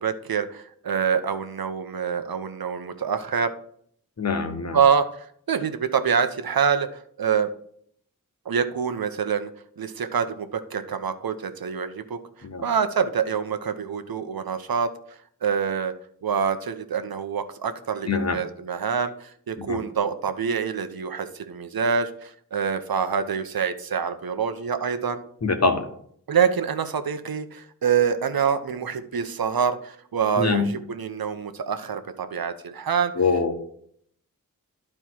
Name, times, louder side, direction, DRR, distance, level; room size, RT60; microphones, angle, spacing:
voice 1, 0.0-3.5 4.7-7.5 8.5-9.5 9.8-12.2 12.6-14.9 15.4-15.9 16.2-25.2 26.3-33.1, right 6 dB, 75° right, 9 dB, 0.8 m, -26 dB
voice 2, 4.2-4.8 12.4-12.6 18.1-18.4 19.7-19.8 25.4-25.8 30.4-30.7 33.2-33.5, left 4 dB, 45° left, 6 dB, 1.3 m, -23 dB
12.0 x 4.4 x 4.7 m, 0.64 s
wide cardioid pair, 65°, 36 cm